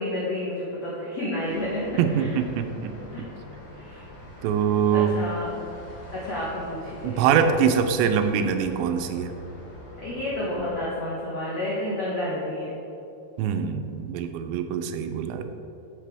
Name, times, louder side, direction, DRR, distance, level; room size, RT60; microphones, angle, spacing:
voice 1, 0.0-1.9 2.2-2.3 3.1-3.3 3.7-4.0 4.9-5.5 6.1-7.5 7.8-7.9 10.0-12.7, left 1 dB, 85° left, -7 dB, 1.4 m, -30 dB
sound 1, 1.4-10.8, equal, 45° left, 2.6 m, -44 dB
voice 2, 2.0-3.3 4.4-5.2 7.0-9.3 13.4-15.6, right 7 dB, 85° right, 7 dB, 2.8 m, -24 dB
10.5 x 6.7 x 3.4 m, 2.8 s
omnidirectional pair, 5.1 m